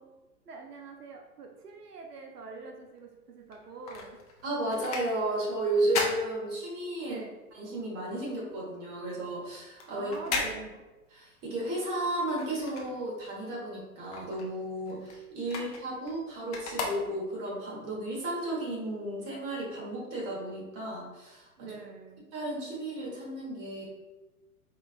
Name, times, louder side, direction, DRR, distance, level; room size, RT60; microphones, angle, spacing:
voice 1, 0.5-4.2 7.0-7.4 9.9-10.8 15.5-15.7 21.6-22.3, right 4 dB, 90° right, 2 dB, 0.6 m, -44 dB
sound 1, 3.4-7.1 7.5-13.4 13.8-17.5 18.1-18.2, left 4 dB, 30° left, 0.4 m, -38 dB
voice 2, 4.4-7.2 7.5-10.1 11.1-21.8 22.3-23.8, right 1 dB, 30° right, -3 dB, 1.2 m, -33 dB
4.4 x 2.4 x 2.4 m, 1.1 s
hypercardioid pair, 115°, 45 cm